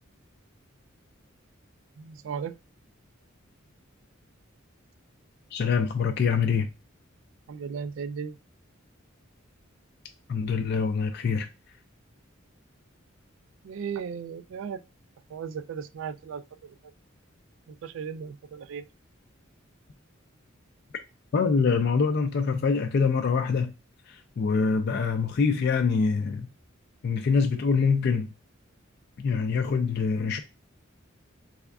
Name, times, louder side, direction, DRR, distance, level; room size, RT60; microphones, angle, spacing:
voice 1, 2.0-2.6 7.5-8.4 13.6-14.8 15.3-16.4 17.7-18.8, right 6 dB, 70° right, 0.3 m, -36 dB
voice 2, 5.5-6.7 10.3-11.5 21.3-23.7 24.1-26.5 27.0-28.3 29.2-30.4, left 5 dB, 55° left, 0.4 m, -25 dB
3.5 x 3.5 x 2.3 m
head